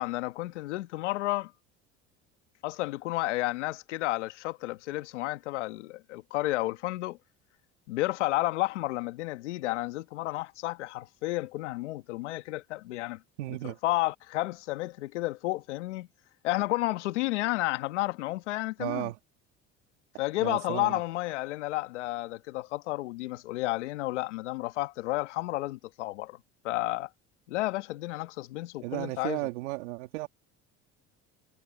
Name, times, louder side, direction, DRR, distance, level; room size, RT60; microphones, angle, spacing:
voice 1, 0.0-1.5 2.6-7.2 7.9-13.2 13.6-16.1 16.4-19.1 20.2-26.4 26.6-27.1 27.5-29.4, left 18 dB, 90° left, 1.6 m, -31 dB
voice 2, 13.4-13.8 18.8-19.2 20.4-21.0 28.8-30.3, right 19 dB, 85° right, 2.3 m, -34 dB
hypercardioid pair, 75°, 34 cm